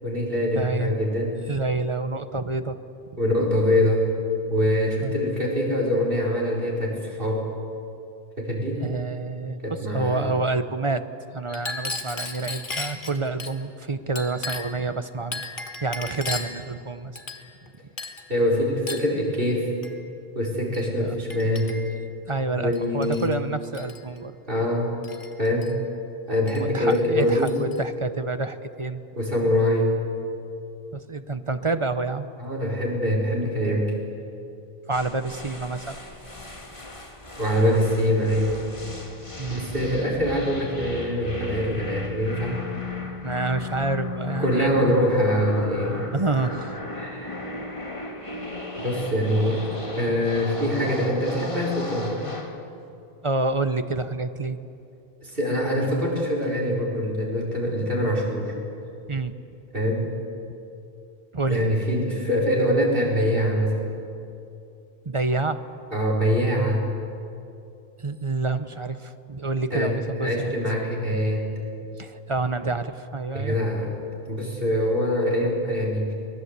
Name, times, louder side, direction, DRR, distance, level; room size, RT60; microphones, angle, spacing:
voice 1, 0.0-1.4 3.2-4.1 4.5-7.5 8.4-8.8 9.6-10.3 18.3-19.7 20.3-21.7 22.5-23.3 24.5-24.9 25.4-25.8 26.3-27.6 29.2-30.0 32.4-33.9 37.4-38.6 39.5-42.6 44.4-46.1 47.0-47.3 48.8-49.7 49.9-52.2 55.2-58.5 59.7-60.1 61.4-63.8 65.9-66.8 69.7-71.5 73.3-73.9 74.2-76.1, equal, 60° right, -2 dB, 5.0 m, -24 dB
voice 2, 0.5-0.9 1.5-2.8 5.0-5.1 8.8-11.0 11.3-15.4 15.8-17.1 21.0-21.2 22.3-24.3 26.6-29.0 30.9-32.3 34.9-36.0 39.4-40.1 43.2-45.0 46.1-46.8 53.2-54.6 59.1-59.3 61.3-61.7 65.0-65.6 68.0-70.5 71.9-73.6, right 3 dB, 30° right, 10 dB, 0.9 m, -28 dB
Chink clink, 11.5-13.5 14.2-14.8 15.3-16.6 17.2-17.7 18.0-18.3 18.9-19.1 19.8-20.0 20.7-20.9 21.3-22.0 22.7-23.3 23.6-24.0 25.0-25.7 26.5-26.6 26.9-27.8, left 3 dB, 55° left, 1.8 m, -35 dB
sound 1, 34.9-52.6, left 3 dB, 30° left, 2.0 m, -36 dB
24.0 x 20.5 x 8.2 m, 2.7 s
omnidirectional pair, 1.0 m